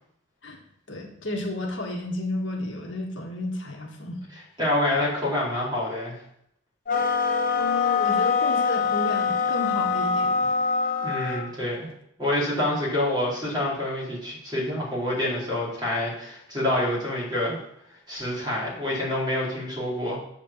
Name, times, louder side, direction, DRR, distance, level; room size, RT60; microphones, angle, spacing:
voice 1, 0.9-4.2 7.6-10.5, left 2 dB, 70° left, 0 dB, 1.8 m, -32 dB
voice 2, 4.6-6.2 11.0-11.8 12.2-17.6 18.1-20.2, left 1 dB, 20° right, -6 dB, 4.3 m, -27 dB
sound 1, 6.9-11.5, left 5 dB, 45° left, 1.0 m, -24 dB
8.3 x 5.0 x 7.2 m, 0.74 s
head